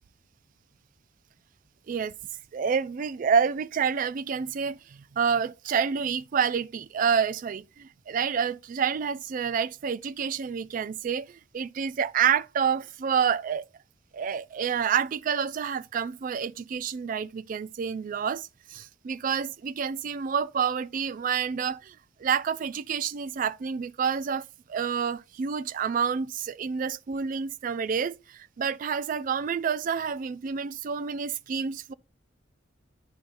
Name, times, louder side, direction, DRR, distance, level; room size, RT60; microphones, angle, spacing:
voice 1, 2.5-13.6 14.1-31.9, right 7 dB, 45° right, 0.3 m, -28 dB
10.0 x 5.4 x 2.5 m
head